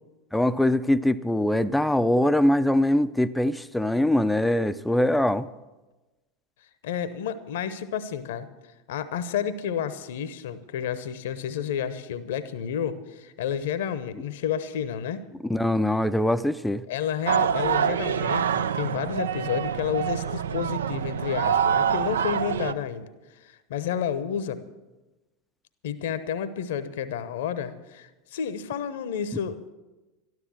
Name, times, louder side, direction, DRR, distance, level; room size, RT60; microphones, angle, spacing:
voice 1, 0.3-5.5 15.4-16.8, left 1 dB, 5° left, 13 dB, 0.5 m, -22 dB
voice 2, 6.8-8.5 8.9-15.2 16.9-23.1 23.4-24.6 25.8-29.7, left 8 dB, 60° left, 14 dB, 0.9 m, -30 dB
sound 1, 17.3-22.7, right 8 dB, 70° right, 0.4 m, -26 dB
13.0 x 12.5 x 6.3 m, 1.1 s
figure-of-eight pair, 80°, 0 cm